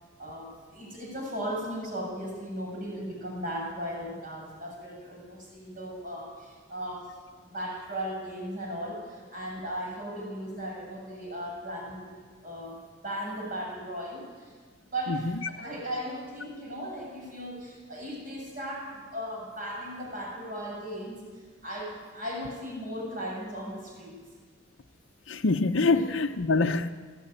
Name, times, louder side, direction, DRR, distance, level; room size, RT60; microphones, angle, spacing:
voice 1, 0.2-7.2 7.5-12.1 12.4-14.5 14.9-21.2 21.6-24.2 25.8-26.1, equal, 45° right, 7.1 m, -37 dB
voice 2, 15.1-15.5 25.3-26.9, left 3 dB, 80° left, 0.7 m, -25 dB
20.5 x 14.5 x 9.0 m
head